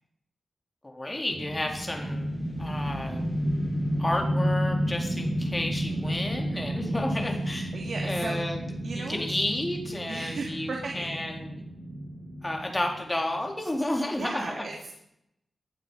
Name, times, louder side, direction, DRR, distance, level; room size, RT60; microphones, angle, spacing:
voice 1, 0.8-2.3 2.6-3.3 4.0-7.7 8.0-8.6 8.9-11.5 12.4-14.7, left 1 dB, 20° left, 2 dB, 3.8 m, -31 dB
sound 1, 1.3-13.5, equal, 15° right, 5.6 m, -31 dB
voice 2, 7.7-8.4 8.8-9.2 10.1-11.1 14.2-14.9, right 3 dB, 70° right, 0 dB, 2.8 m, -35 dB
19.5 x 11.5 x 5.7 m, 0.79 s
wide cardioid pair, 95°, 0 cm